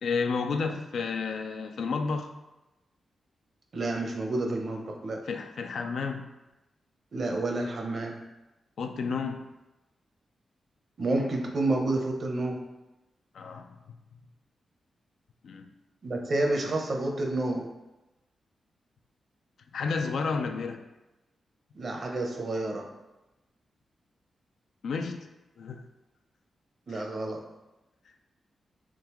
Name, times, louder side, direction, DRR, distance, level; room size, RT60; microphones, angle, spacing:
voice 1, 0.0-2.3 5.2-6.3 8.8-9.4 13.3-14.0 15.4-15.7 19.7-20.8 24.8-25.3 25.6-25.8 26.9-27.1, left 4 dB, 75° left, 5 dB, 0.3 m, -31 dB
voice 2, 3.7-5.2 7.1-8.2 11.0-12.6 16.0-17.6 21.8-22.9 26.9-27.4, right 2 dB, 50° right, 1 dB, 0.7 m, -29 dB
3.7 x 3.4 x 2.9 m, 1.0 s
cardioid pair, 85°, 0 cm